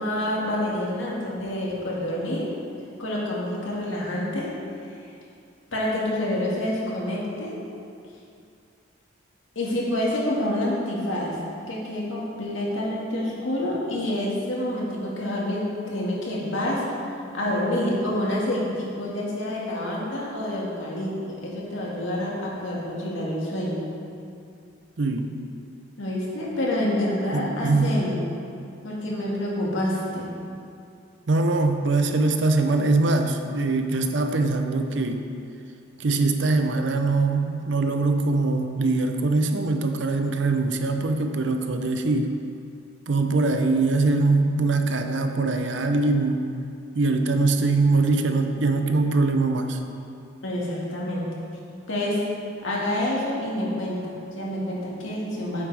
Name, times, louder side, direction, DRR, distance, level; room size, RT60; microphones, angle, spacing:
voice 1, 0.0-2.5 3.0-4.5 5.7-7.6 9.6-11.4 11.7-16.8 17.3-23.9 26.0-28.3 28.8-30.3 50.4-51.2 51.9-52.2 52.6-55.6, left 1 dB, 75° left, -5 dB, 1.9 m, -27 dB
voice 2, 25.0-25.4 27.3-28.0 31.3-35.2 36.0-42.3 43.1-46.5 46.9-49.8, right 3 dB, 65° right, 6 dB, 0.6 m, -22 dB
8.9 x 7.8 x 3.4 m, 2.5 s
head